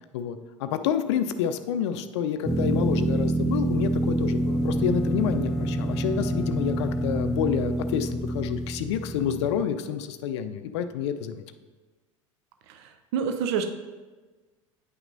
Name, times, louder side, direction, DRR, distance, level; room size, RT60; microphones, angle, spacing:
voice 1, 0.1-11.4, left 8 dB, 60° left, 10 dB, 0.5 m, -28 dB
sound 1, 2.4-9.6, right 1 dB, 5° right, 0.5 m, -27 dB
Bowed string instrument, 4.3-8.1, equal, 20° left, 0.9 m, -36 dB
voice 2, 12.7-13.7, right 7 dB, 55° right, 6 dB, 0.5 m, -28 dB
9.4 x 5.9 x 2.6 m, 1.3 s
figure-of-eight pair, 75°, 17 cm